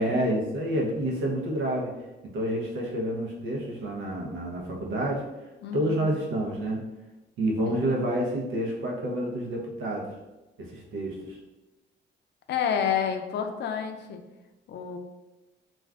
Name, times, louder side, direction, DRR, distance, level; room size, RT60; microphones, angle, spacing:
voice 1, 0.0-1.9 2.2-5.3 5.7-6.8 7.4-10.1 10.6-11.4, right 1 dB, 85° right, -1 dB, 0.7 m, -28 dB
voice 2, 5.6-6.2 7.7-7.9 12.5-14.2 14.7-15.0, left 8 dB, 60° left, 5 dB, 0.4 m, -29 dB
2.5 x 2.3 x 3.3 m, 1.1 s
cardioid pair, 90°, 20 cm